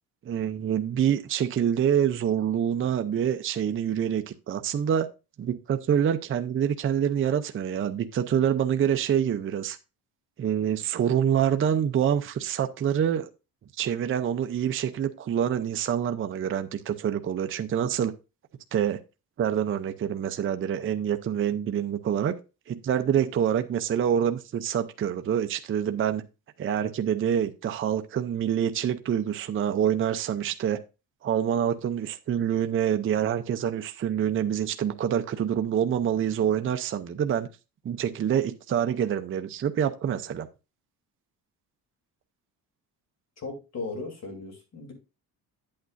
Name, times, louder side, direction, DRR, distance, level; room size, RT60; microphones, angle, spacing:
voice 1, 0.2-5.1 5.4-9.8 10.4-13.3 13.8-18.1 18.7-19.0 19.4-22.3 22.7-26.2 26.6-30.8 31.2-37.5 37.8-40.5, right 9 dB, 35° right, 0.6 m, -26 dB
voice 2, 43.4-44.9, left 3 dB, 45° left, 3.2 m, -37 dB
9.2 x 8.7 x 2.6 m
cardioid pair, 135°, 38 cm